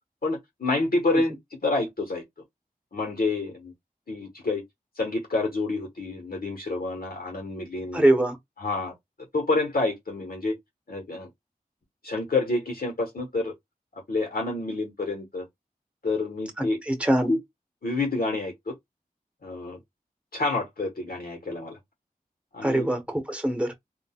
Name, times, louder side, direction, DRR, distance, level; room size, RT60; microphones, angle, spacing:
voice 1, 0.2-1.3 1.6-2.2 2.9-3.7 4.1-4.6 5.0-8.0 8.6-8.9 9.3-10.6 10.9-11.3 12.0-13.5 14.1-15.5 16.0-16.8 17.3-17.4 17.8-18.7 19.4-19.8 20.3-21.8 22.5-22.9, left 2 dB, 75° left, 1.1 m, -28 dB
voice 2, 7.9-8.4 16.6-17.3 22.6-23.7, right 1 dB, 10° right, 1.0 m, -23 dB
3.8 x 2.3 x 2.2 m
wide cardioid pair, 65°, 16 cm